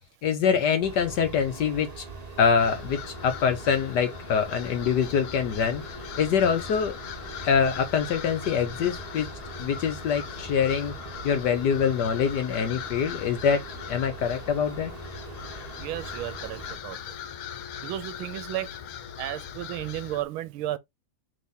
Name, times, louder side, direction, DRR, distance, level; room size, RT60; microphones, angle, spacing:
voice 1, 0.2-2.0 2.4-5.8 6.2-7.0 7.4-9.3 9.6-10.9 11.2-13.6 13.9-14.9, left 7 dB, 65° left, 1.1 m, -24 dB
sound 1, 0.8-16.8, right 4 dB, 25° right, 0.9 m, -42 dB
sound 2, 2.6-20.2, left 9 dB, 85° left, 1.5 m, -40 dB
voice 2, 15.8-16.6 16.8-17.0 17.8-18.7 19.2-20.8, right 14 dB, 80° right, 1.4 m, -33 dB
3.5 x 3.4 x 3.9 m
omnidirectional pair, 2.3 m